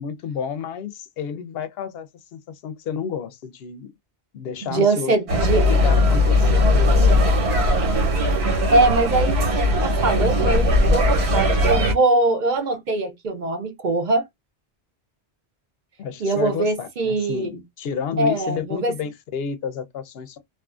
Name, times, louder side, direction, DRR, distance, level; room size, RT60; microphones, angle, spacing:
voice 1, 0.0-3.9 4.3-5.1 5.7-6.7 16.0-20.4, left 7 dB, 75° left, 0.8 m, -31 dB
voice 2, 4.7-5.6 8.7-14.2 16.2-17.5 18.2-18.9, right 2 dB, 50° right, 0.7 m, -22 dB
sound 1, 5.3-11.9, left 1 dB, 90° right, 1.4 m, -18 dB
2.5 x 2.4 x 2.3 m
omnidirectional pair, 1.1 m